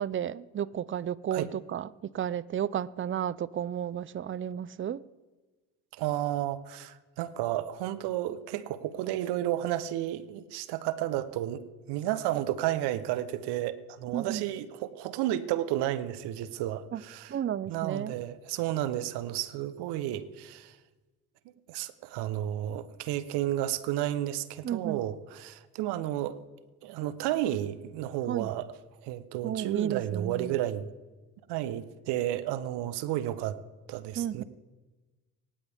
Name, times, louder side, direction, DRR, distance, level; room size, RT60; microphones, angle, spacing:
voice 1, 0.0-5.0 14.1-14.4 16.9-17.0 17.3-18.2 24.6-25.0 28.3-28.5 29.4-30.6 34.1-34.4, right 9 dB, 30° right, 0.5 m, -32 dB
voice 2, 5.9-17.3 17.7-20.8 21.7-26.4 26.8-28.7 29.0-30.9 31.5-33.6 33.9-34.4, right 13 dB, 80° right, 1.0 m, -32 dB
24.5 x 10.0 x 3.6 m
supercardioid pair, 65°, 40 cm